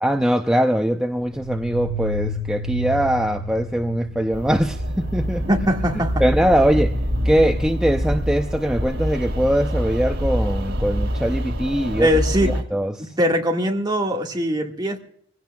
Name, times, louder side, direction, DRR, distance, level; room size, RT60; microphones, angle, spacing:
voice 1, 0.0-5.5 6.2-12.1 12.4-13.2, equal, 5° right, 0.6 m, -22 dB
sound 1, 1.1-9.5, right 2 dB, 45° right, 4.5 m, -33 dB
sound 2, 4.3-12.6, equal, 80° right, 2.2 m, -25 dB
voice 2, 5.5-6.2 12.0-12.5 13.2-15.0, equal, 20° right, 1.8 m, -21 dB
25.0 x 16.5 x 2.3 m
head